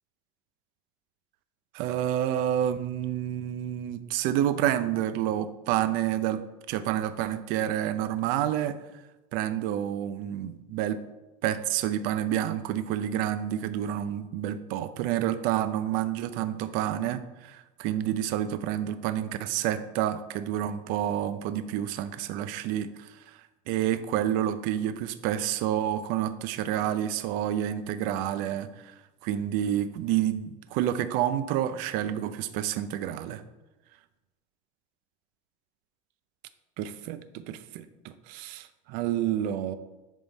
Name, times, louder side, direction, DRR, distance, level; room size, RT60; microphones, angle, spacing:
voice 1, 1.7-6.4 6.7-8.8 9.3-11.0 11.4-33.4 36.8-39.7, right 11 dB, 60° right, 12 dB, 0.6 m, -29 dB
10.5 x 3.7 x 4.0 m, 1.1 s
cardioid pair, 150°, 16 cm